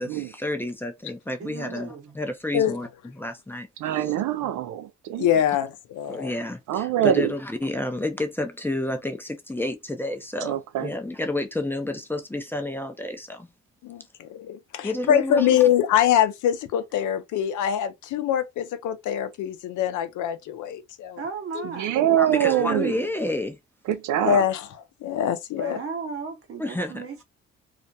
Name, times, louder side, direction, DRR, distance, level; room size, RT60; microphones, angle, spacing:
voice 1, 0.0-2.9 3.2-3.7 6.1-13.5 14.8-15.6 22.2-23.6 26.6-27.0, left 1 dB, 5° left, 0.5 m, -30 dB
voice 2, 1.4-2.2 4.1-4.5 21.2-22.1 25.6-27.2, right 5 dB, 50° right, 0.9 m, -36 dB
voice 3, 3.8-5.3 6.7-7.3 10.4-10.9 21.8-23.1 23.9-24.4, right 11 dB, 80° right, 0.5 m, -24 dB
voice 4, 5.2-6.3 13.8-21.2 21.5-21.7 24.2-24.7 25.0-25.8, left 10 dB, 75° left, 0.6 m, -24 dB
2.4 x 2.1 x 2.7 m
cardioid pair, 90°, 30 cm